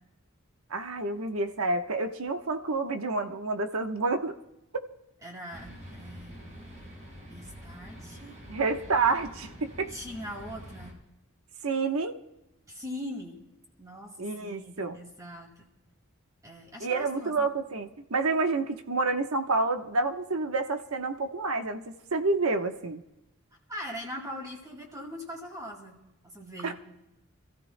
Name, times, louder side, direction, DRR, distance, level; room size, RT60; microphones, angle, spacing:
voice 1, 0.7-4.4 8.5-9.9 11.6-12.2 14.2-15.0 16.8-23.0 26.6-26.7, right 3 dB, 90° right, 6 dB, 1.1 m, -29 dB
voice 2, 5.2-6.4 7.3-8.3 9.9-11.0 12.7-13.4 13.8-15.7 16.4-17.5 23.7-26.0 26.2-26.7, equal, 15° right, 1 dB, 2.2 m, -41 dB
sound 1, 5.5-10.9, equal, 35° right, 4.3 m, -46 dB
28.0 x 14.5 x 2.2 m, 0.92 s
head